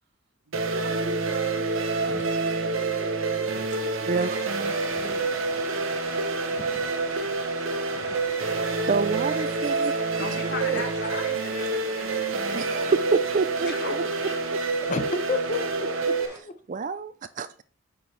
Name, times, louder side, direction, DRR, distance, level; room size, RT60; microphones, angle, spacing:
voice 1, 0.4-4.2 4.7-6.2, right 3 dB, 60° right, 1.4 m, -45 dB
sound 1, 0.5-16.3, right 3 dB, 90° right, 1.0 m, -27 dB
sound 2, 4.1-16.4, right 1 dB, 15° right, 2.1 m, -43 dB
voice 2, 4.1-4.4 8.9-10.0 10.7-10.8 12.5-14.6 16.4-17.6, right 4 dB, 40° right, 0.4 m, -28 dB
voice 3, 10.2-13.0 13.6-14.7, left 3 dB, 55° left, 1.8 m, -37 dB
voice 4, 14.9-16.5, left 3 dB, 40° left, 0.7 m, -31 dB
8.2 x 5.9 x 3.3 m
head